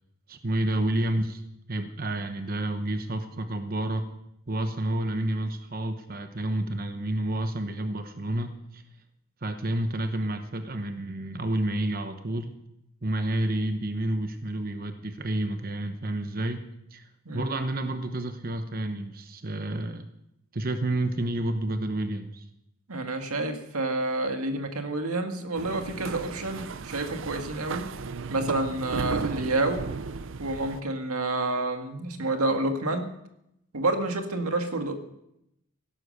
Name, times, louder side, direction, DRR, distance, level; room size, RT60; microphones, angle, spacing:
voice 1, 0.3-1.4 1.7-4.0 4.5-8.8 9.4-12.6 13.0-20.1 20.5-22.4, right 1 dB, 40° right, 7 dB, 1.0 m, -30 dB
voice 2, 22.9-27.9 28.3-29.9 30.4-33.1 33.7-34.9, right 2 dB, 85° right, 6 dB, 2.0 m, -29 dB
sound 1, 25.5-30.8, right 4 dB, 60° right, 0.6 m, -35 dB
16.0 x 12.0 x 6.7 m, 0.81 s
head